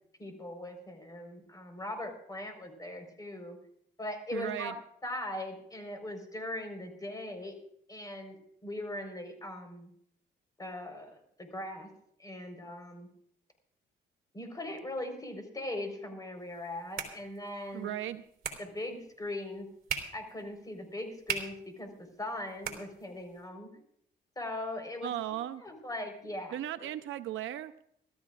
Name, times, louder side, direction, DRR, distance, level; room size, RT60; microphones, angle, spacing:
voice 1, 0.2-3.6 4.0-4.7 5.0-7.5 7.9-8.4 8.6-9.9 10.6-11.9 12.2-13.1 14.3-17.9 18.6-19.7 20.1-23.7 24.4-25.1 25.6-26.5 26.8-26.9, left 1 dB, 20° left, 4 dB, 4.4 m, -40 dB
voice 2, 4.3-4.7 17.7-18.2 25.0-25.6 26.5-27.7, right 12 dB, 80° right, 9 dB, 0.7 m, -36 dB
sound 1, 16.4-23.5, right 7 dB, 50° right, 3.3 m, -42 dB
26.0 x 13.5 x 2.5 m, 0.67 s
cardioid pair, 90°, 20 cm